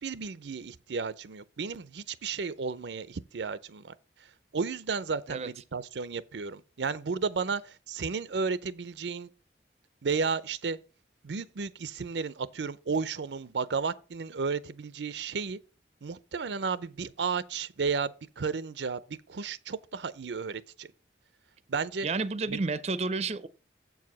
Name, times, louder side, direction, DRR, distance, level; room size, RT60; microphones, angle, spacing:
voice 1, 0.0-3.9 4.2-9.3 10.0-10.8 11.2-15.6 16.0-20.9 21.7-22.1 22.5-22.6, right 5 dB, 90° right, 0.5 m, -33 dB
voice 2, 22.0-23.5, right 3 dB, 35° right, 0.5 m, -30 dB
7.7 x 4.8 x 6.1 m
head